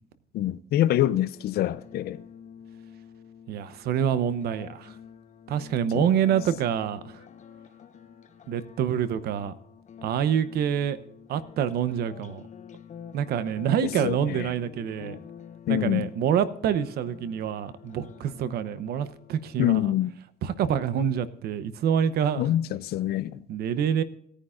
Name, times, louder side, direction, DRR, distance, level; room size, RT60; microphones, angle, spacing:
voice 1, 0.3-2.2 5.9-6.1 13.8-14.5 15.7-16.1 19.6-20.1 22.4-23.4, left 13 dB, 70° left, 0.6 m, -25 dB
sound 1, 1.3-20.3, left 8 dB, 45° left, 1.0 m, -48 dB
voice 2, 3.5-4.9 5.5-7.2 8.5-9.5 10.0-11.0 11.3-12.4 13.1-15.2 15.7-19.8 20.4-22.5 23.5-24.0, right 8 dB, 70° right, 0.9 m, -26 dB
17.5 x 9.9 x 2.5 m
cardioid pair, 110°, 17 cm